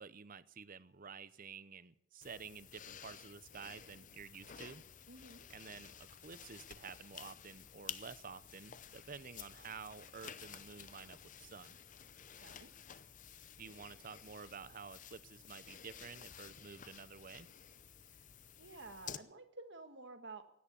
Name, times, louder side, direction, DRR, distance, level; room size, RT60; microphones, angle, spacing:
voice 1, 0.0-4.8 5.5-11.8 13.6-17.5, right 5 dB, 45° right, 16 dB, 0.7 m, -51 dB
sound 1, 2.2-19.2, left 8 dB, 40° left, 0.7 m, -53 dB
voice 2, 5.1-5.5 12.3-12.7 18.1-18.2 18.6-20.4, right 3 dB, 60° right, 8 dB, 1.6 m, -52 dB
17.0 x 11.0 x 6.9 m, 0.76 s
head